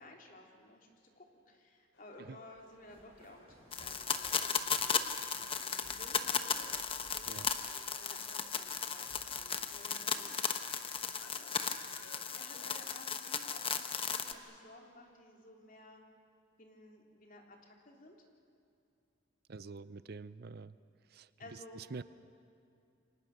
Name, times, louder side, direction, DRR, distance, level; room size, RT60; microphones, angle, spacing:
voice 1, 0.0-6.7 7.6-10.7 11.2-16.0 16.6-18.2 21.4-21.8, left 1 dB, 45° left, 1 dB, 3.3 m, -56 dB
sound 1, 1.9-12.9, left 2 dB, 85° left, 3.3 m, -60 dB
sound 2, 2.5-7.6, right 1 dB, 30° right, 5.8 m, -61 dB
sound 3, 3.7-14.3, left 6 dB, 30° left, 1.0 m, -36 dB
voice 2, 19.5-20.8 21.1-22.0, right 4 dB, 55° right, 16 dB, 0.5 m, -47 dB
28.5 x 24.5 x 6.5 m, 2.5 s
head